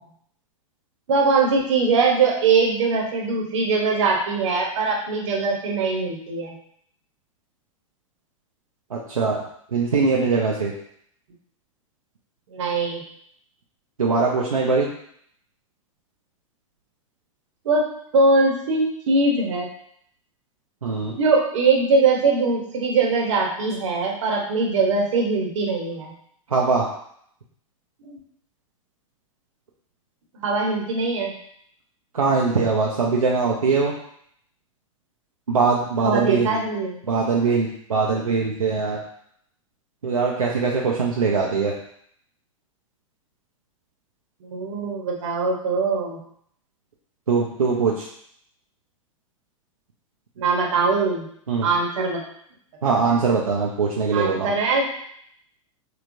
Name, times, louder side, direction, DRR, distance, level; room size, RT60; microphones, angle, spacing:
voice 1, 1.1-6.5 12.5-13.0 17.6-19.7 21.1-26.1 28.0-28.2 30.3-31.3 36.0-37.0 44.4-46.2 50.4-51.3 51.6-52.2 54.1-54.9, right 4 dB, 60° right, -1 dB, 0.9 m, -21 dB
voice 2, 8.9-9.4 9.7-10.7 14.0-14.9 20.8-21.2 26.5-26.8 32.1-33.9 35.5-36.6 37.1-39.0 40.0-41.7 47.3-48.0 51.5-51.7 52.8-54.5, right 4 dB, 85° right, -3 dB, 0.5 m, -21 dB
3.3 x 3.2 x 2.6 m, 0.67 s
figure-of-eight pair, 100°, 18 cm